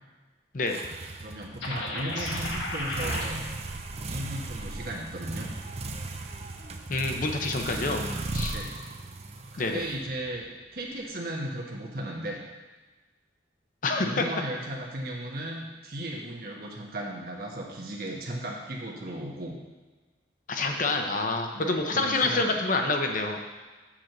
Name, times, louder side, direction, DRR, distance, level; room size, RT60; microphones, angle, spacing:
sound 1, 0.7-10.4, right 2 dB, 35° right, 0.6 m, -36 dB
voice 1, 1.2-3.4 4.1-5.5 8.5-8.7 9.5-10.5 10.7-12.4 13.9-19.6 20.9-21.2 21.5-22.6, right 1 dB, 50° right, -2 dB, 1.2 m, -36 dB
sound 2, 1.6-3.3, left 2 dB, 85° left, 1.6 m, -33 dB
voice 2, 6.9-8.0 8.3-8.6 9.6-9.8 13.8-14.2 20.5-23.4, left 3 dB, 45° left, 4 dB, 0.8 m, -27 dB
7.5 x 4.6 x 6.6 m, 1.3 s
head